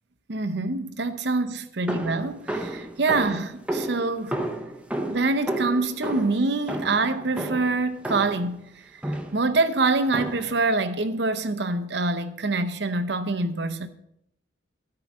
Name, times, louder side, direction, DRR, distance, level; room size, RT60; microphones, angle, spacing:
voice 1, 0.3-4.4 5.0-8.6 9.1-13.9, right 3 dB, 60° right, 0.7 m, -25 dB
sound 1, 1.9-8.5 9.0-9.5 10.1-10.6, right 1 dB, 5° right, 0.7 m, -32 dB
13.0 x 4.8 x 6.0 m
head